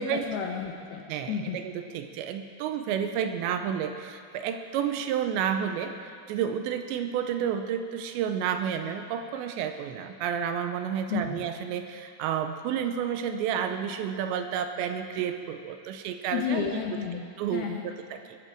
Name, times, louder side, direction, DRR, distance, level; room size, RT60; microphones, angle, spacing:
voice 1, 0.0-1.0 1.3-1.6 11.1-11.5 16.3-17.2 17.5-18.0, left 7 dB, 75° left, 1 dB, 2.4 m, -31 dB
voice 2, 1.1-16.8 17.4-18.4, right 8 dB, 85° right, 7 dB, 2.8 m, -31 dB
21.0 x 8.3 x 7.4 m, 2.3 s
omnidirectional pair, 5.3 m